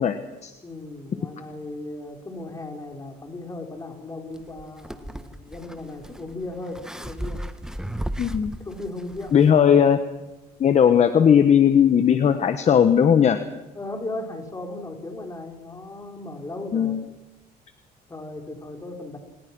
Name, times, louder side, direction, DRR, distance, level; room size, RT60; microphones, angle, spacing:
voice 1, 0.0-0.5 8.2-8.5 9.3-10.0 10.6-13.4 16.7-17.0, left 8 dB, 40° left, 9 dB, 1.3 m, -18 dB
voice 2, 0.6-7.4 8.6-9.3 13.7-17.0 18.1-19.2, left 2 dB, 20° left, 3 dB, 4.9 m, -36 dB
sound 1, 4.3-9.5, right 1 dB, 5° right, 1.4 m, -35 dB
27.5 x 20.0 x 6.2 m, 1.0 s
cardioid pair, 110°, 17 cm